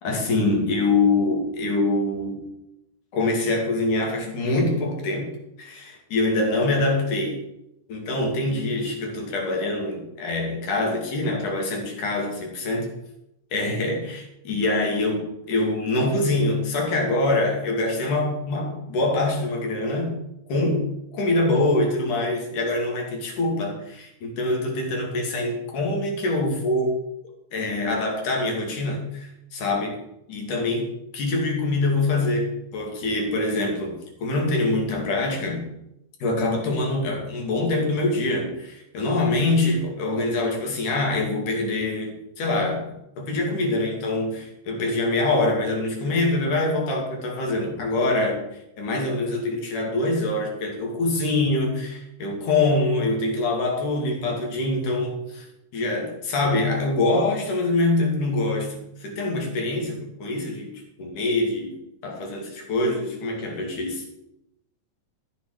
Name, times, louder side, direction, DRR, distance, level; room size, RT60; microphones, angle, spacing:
voice 1, 0.0-2.5 3.1-5.3 5.6-7.4 7.9-12.9 13.5-20.1 20.5-27.0 27.5-30.0 30.3-35.7 36.2-48.4 48.8-55.5 55.7-60.7 61.0-64.0, left 2 dB, 75° left, 1 dB, 4.2 m, -24 dB
13.5 x 7.8 x 6.6 m, 0.84 s
omnidirectional pair, 3.6 m